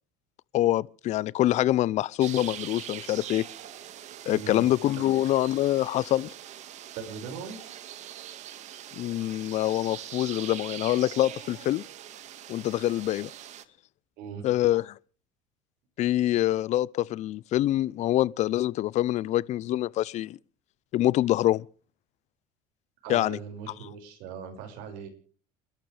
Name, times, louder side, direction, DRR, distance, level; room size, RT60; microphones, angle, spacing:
voice 1, 0.5-3.4 4.3-6.3 9.0-11.8 12.5-13.3 14.4-14.8 16.0-20.4 20.9-21.6 23.1-23.4, left 14 dB, 50° left, 0.7 m, -25 dB
Ukraine forest atmo in May, 2.2-13.6, right 11 dB, 55° right, 1.8 m, -42 dB
voice 2, 4.3-4.7 5.0-5.1 6.9-7.6 14.2-14.4 23.0-25.1, right 6 dB, 75° right, 6.0 m, -39 dB
29.5 x 12.0 x 3.4 m
cardioid pair, 120°, 15 cm